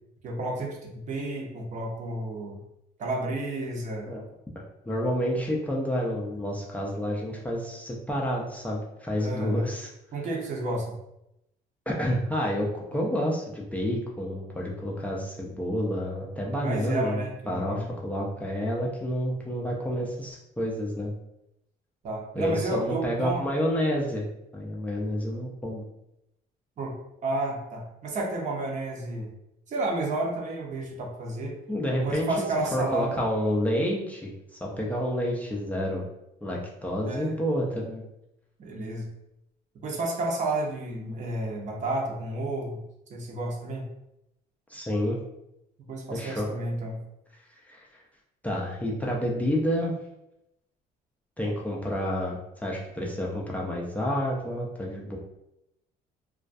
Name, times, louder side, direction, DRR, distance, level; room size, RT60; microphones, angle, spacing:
voice 1, 0.2-2.6 3.0-4.1 9.2-9.7 10.1-10.9 16.5-17.9 22.0-23.4 26.8-26.9 27.2-29.3 29.7-31.6 32.0-33.2 37.1-37.3 38.6-39.1 39.8-42.8 43.1-43.9 45.9-47.0, right 2 dB, 45° right, 0 dB, 0.6 m, -31 dB
voice 2, 4.6-9.9 11.9-21.1 22.3-24.3 24.5-25.8 31.7-32.3 32.7-34.3 34.6-36.0 36.4-38.0 44.7-45.2 46.1-46.5 47.7-47.9 48.4-50.0 51.4-55.2, equal, 10° left, -4 dB, 0.4 m, -29 dB
2.3 x 2.2 x 2.5 m, 0.84 s
cardioid pair, 110°, 17 cm